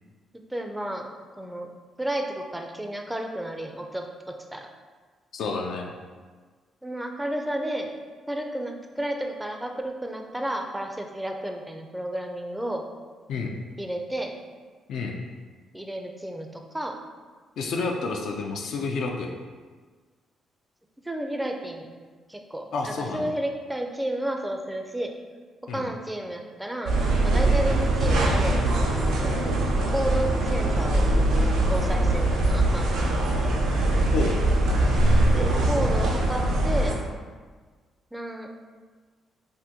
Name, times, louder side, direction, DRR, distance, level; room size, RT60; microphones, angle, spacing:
voice 1, 0.5-1.1 1.4-1.7 2.0-4.0 4.5-4.7 6.8-7.9 8.3-12.8 13.8-14.3 15.7-17.0 21.0-21.9 22.3-25.1 25.7-27.0 27.2-28.6 29.2-29.5 29.9-31.1 31.7-33.5 35.3-37.0 38.1-38.5, right 1 dB, 5° right, 3 dB, 0.3 m, -32 dB
voice 2, 5.3-5.9 13.3-13.6 14.9-15.2 17.6-19.3 22.7-23.4 25.7-25.9 27.4-27.6 34.1-34.4, left 4 dB, 75° left, 1 dB, 0.3 m, -30 dB
sound 1, 26.9-36.9, right 1 dB, 85° right, 0.5 m, -22 dB
3.5 x 2.1 x 2.8 m, 1.4 s
cardioid pair, 90°, 0 cm